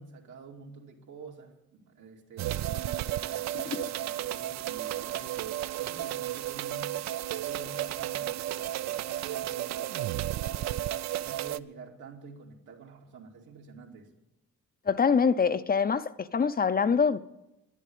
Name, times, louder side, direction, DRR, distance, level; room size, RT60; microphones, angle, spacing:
voice 1, 0.0-6.9 7.3-10.9 11.2-14.1, right 5 dB, 80° right, 2.5 m, -48 dB
sound 1, 2.4-11.6, right 13 dB, 65° right, 0.5 m, -33 dB
voice 2, 14.9-17.2, left 6 dB, 30° left, 0.6 m, -25 dB
11.0 x 10.5 x 8.5 m
cardioid pair, 90°, 30 cm